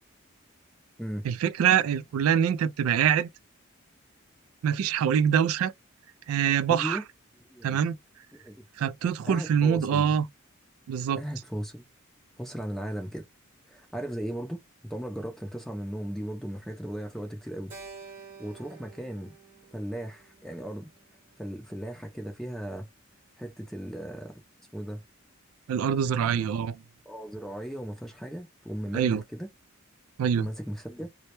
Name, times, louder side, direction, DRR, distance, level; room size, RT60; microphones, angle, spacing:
voice 1, 1.2-3.3 4.6-5.7 6.3-7.0 7.6-8.0 8.8-10.2 10.9-11.2 25.7-26.7 28.9-29.2 30.2-30.5, right 8 dB, 90° right, 0.3 m, -24 dB
voice 2, 6.7-7.0 7.5-7.8 8.3-8.6 9.3-10.1 11.2-11.8 12.4-13.3 13.7-17.7 18.4-19.3 19.7-20.9 21.4-22.9 23.4-24.4 24.7-25.0 26.2-26.5 27.1-29.5 30.4-31.1, equal, ahead, 0.4 m, -37 dB
Keyboard (musical), 17.7-22.1, right 5 dB, 40° right, 0.9 m, -50 dB
2.1 x 2.1 x 2.8 m
head